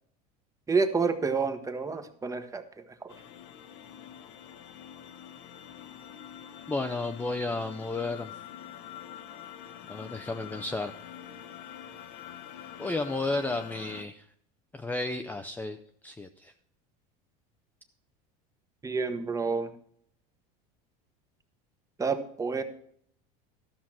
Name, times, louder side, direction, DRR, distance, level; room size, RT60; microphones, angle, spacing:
voice 1, 0.7-2.6 3.0-3.1 18.8-19.7 22.0-22.6, right 4 dB, 15° right, 9 dB, 1.1 m, -29 dB
sound 1, 3.1-14.0, left 9 dB, 60° left, 1.0 m, -46 dB
voice 2, 6.7-8.3 9.9-10.9 12.8-14.3 14.7-16.5, left 2 dB, 10° left, 6 dB, 0.6 m, -33 dB
13.0 x 5.8 x 6.1 m, 0.65 s
supercardioid pair, 115°, 20 cm